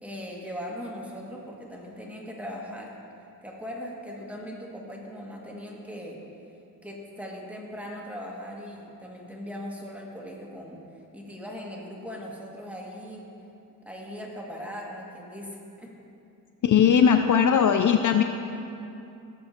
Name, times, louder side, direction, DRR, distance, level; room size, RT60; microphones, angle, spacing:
voice 1, 0.0-3.0 3.4-6.2 6.8-10.8 11.1-13.3 13.9-15.9, equal, 5° right, -2 dB, 1.9 m, -39 dB
voice 2, 16.6-18.2, left 7 dB, 55° left, 7 dB, 0.5 m, -19 dB
17.0 x 6.9 x 2.8 m, 2.7 s
cardioid pair, 65°, 39 cm